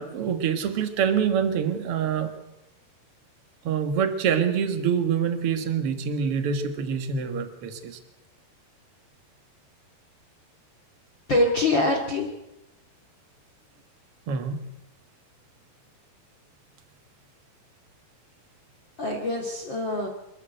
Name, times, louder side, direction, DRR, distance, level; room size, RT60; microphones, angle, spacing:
voice 1, 0.0-2.3 3.6-8.0 14.3-14.6, right 7 dB, 55° right, 8 dB, 1.7 m, -26 dB
voice 2, 11.3-12.3 19.0-20.1, left 2 dB, 35° left, 2 dB, 2.4 m, -24 dB
26.5 x 13.5 x 7.9 m, 0.94 s
omnidirectional pair, 4.9 m